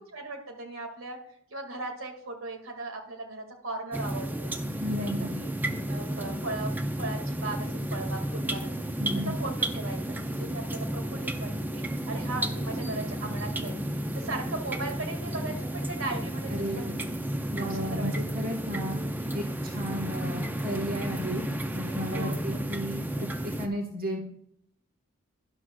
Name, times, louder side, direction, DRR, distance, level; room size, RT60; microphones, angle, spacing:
voice 1, 0.1-1.2 1.5-4.5 4.9-5.1 5.4-5.5 5.9-6.7 7.0-8.7 9.4-13.8 14.1-17.1 17.6-18.1 19.4-19.5 22.1-22.6, right 2 dB, 75° right, 3 dB, 2.0 m, -38 dB
sound 1, 3.9-23.7, right 1 dB, 10° right, 0.4 m, -32 dB
voice 2, 4.8-5.4 9.0-9.3 16.5-16.9 17.5-19.0 19.3-21.5 21.7-24.2, equal, 45° right, 1 dB, 1.2 m, -34 dB
12.0 x 11.0 x 2.3 m, 0.68 s
head